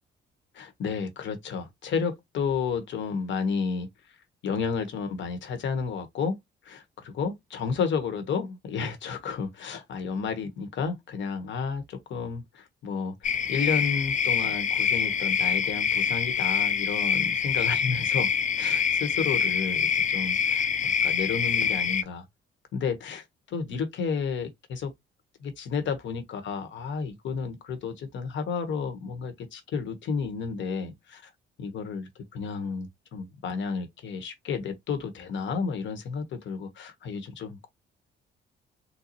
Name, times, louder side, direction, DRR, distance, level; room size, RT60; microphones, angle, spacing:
voice 1, 0.6-3.9 4.4-6.4 6.6-18.3 18.6-22.2 22.7-24.9 25.4-31.3 31.6-37.7, left 5 dB, 70° left, 1.2 m, -32 dB
sound 1, 13.2-22.0, left 7 dB, 40° left, 0.5 m, -25 dB
4.0 x 2.3 x 2.9 m
cardioid pair, 90°, 20 cm